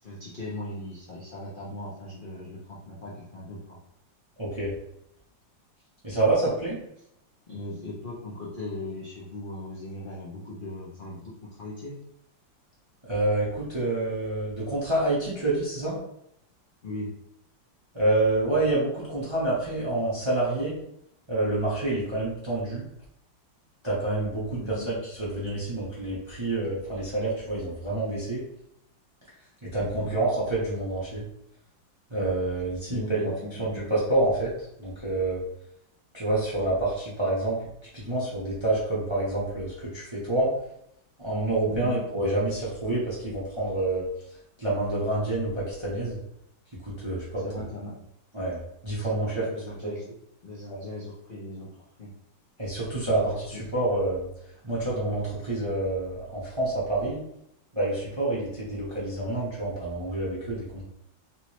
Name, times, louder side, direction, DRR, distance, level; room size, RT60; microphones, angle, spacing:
voice 1, 0.0-3.8 7.5-11.9 16.8-17.1 24.6-24.9 29.8-30.2 32.9-33.8 41.7-42.0 47.4-47.9 49.1-50.0 50.4-52.1 53.1-53.6, left 2 dB, 65° left, -6 dB, 0.5 m, -39 dB
voice 2, 4.4-4.7 6.0-6.8 13.1-16.0 17.9-20.8 21.3-22.9 23.8-28.4 29.6-31.2 32.1-33.3 33.6-34.5 34.8-35.4 36.1-37.6 37.9-40.5 41.2-44.1 44.6-46.2 46.8-47.4 48.3-49.4 52.6-54.3 54.6-57.2 57.7-60.8, right 2 dB, 25° right, -7 dB, 0.6 m, -27 dB
3.3 x 3.0 x 3.0 m, 0.77 s
omnidirectional pair, 2.0 m